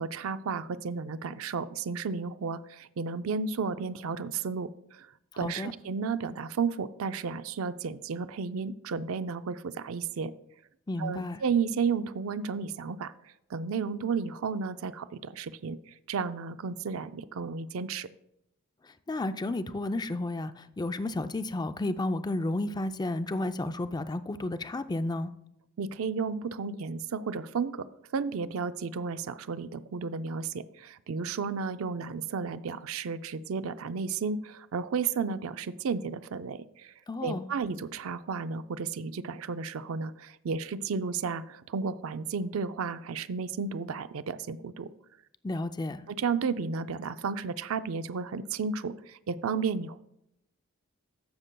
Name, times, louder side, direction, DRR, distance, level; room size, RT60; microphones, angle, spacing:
voice 1, 0.0-5.1 5.4-10.3 11.0-13.1 13.5-15.8 16.1-18.1 25.8-27.9 28.1-36.9 37.2-44.9 46.1-50.0, right 5 dB, 70° right, 0.4 m, -33 dB
voice 2, 5.3-5.7 10.9-11.4 18.8-25.3 37.1-37.5 45.4-46.0, left 2 dB, 20° left, 0.4 m, -32 dB
14.5 x 6.6 x 2.2 m
head